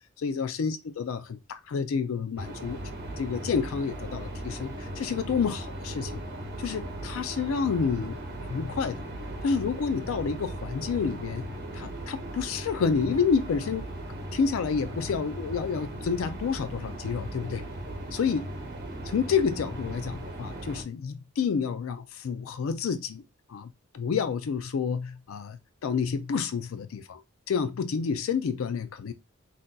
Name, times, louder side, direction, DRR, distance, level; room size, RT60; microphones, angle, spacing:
voice 1, 0.2-2.8 3.2-6.1 6.6-8.2 8.5-9.0 9.4-11.4 11.7-13.9 14.3-17.7 18.1-18.5 19.1-23.2 23.5-27.2 27.5-29.1, left 6 dB, 85° left, 0.4 m, -29 dB
sound 1, 2.4-20.8, right 1 dB, 50° right, 0.8 m, -38 dB
3.9 x 2.5 x 2.2 m
head